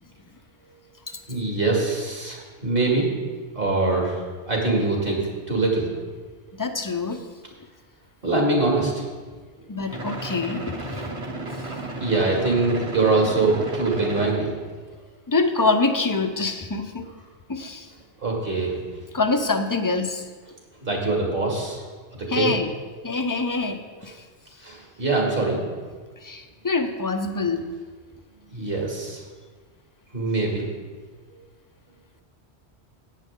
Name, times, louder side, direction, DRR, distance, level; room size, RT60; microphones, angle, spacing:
voice 1, 1.3-3.1 3.5-4.2 4.5-5.9 8.2-9.0 12.0-14.5 18.2-18.8 20.8-21.9 22.3-22.5 24.6-25.6 28.5-29.2 30.1-30.7, right 3 dB, 55° right, -2 dB, 2.6 m, -23 dB
voice 2, 6.5-7.3 9.7-11.1 15.3-17.1 17.5-17.9 19.1-20.2 22.3-22.7 23.0-24.2 26.2-27.7, left 3 dB, 25° left, 7 dB, 0.6 m, -25 dB
sound 1, 9.9-14.4, right 2 dB, 30° right, 1.1 m, -33 dB
14.0 x 9.3 x 3.7 m, 1.4 s
omnidirectional pair, 1.1 m